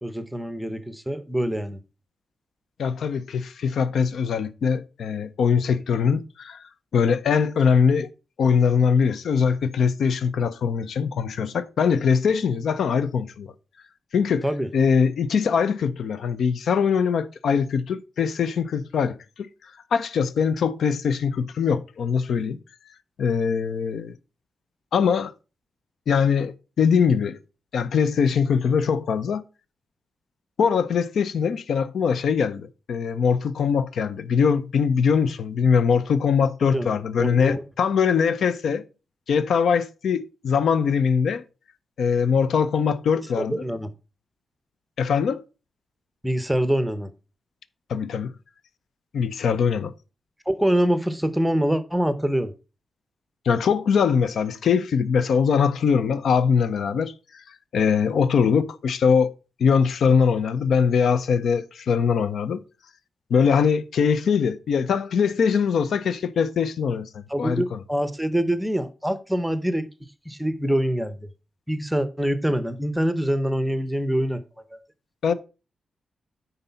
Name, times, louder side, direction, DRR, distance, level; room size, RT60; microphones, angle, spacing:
voice 1, 0.0-1.8 14.4-14.7 36.6-37.6 43.4-43.9 46.2-47.1 50.5-52.5 67.3-69.9 70.3-71.2 71.7-74.4 74.7-74.8, equal, 5° right, 0.7 m, -25 dB
voice 2, 2.8-6.6 6.9-8.1 8.4-13.5 14.1-14.4 14.7-19.2 19.9-22.6 23.2-24.2 24.9-25.3 26.1-27.4 27.7-29.4 30.6-38.8 39.3-41.4 42.0-43.7 45.0-45.4 47.9-48.3 49.1-49.9 53.5-57.4 57.7-59.3 59.6-62.6 63.3-67.8 75.2-75.3, left 6 dB, 70° left, 0.6 m, -22 dB
9.5 x 4.0 x 5.6 m
wide cardioid pair, 165°, 0 cm